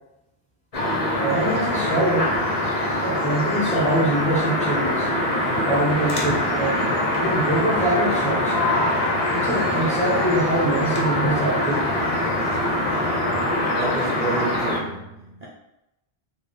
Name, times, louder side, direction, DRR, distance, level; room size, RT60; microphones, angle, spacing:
sound 1, 0.7-14.8, left 1 dB, 40° left, 0.6 m, -23 dB
voice 1, 0.9-2.3 3.0-5.1 5.6-6.9 7.2-8.6 9.3-11.9, right 1 dB, 10° left, -5 dB, 0.7 m, -24 dB
sound 2, 5.5-13.6, equal, 20° right, 0.9 m, -41 dB
voice 2, 13.7-15.5, right 2 dB, 50° right, -4 dB, 0.6 m, -30 dB
3.4 x 2.0 x 4.1 m, 0.89 s
omnidirectional pair, 1.0 m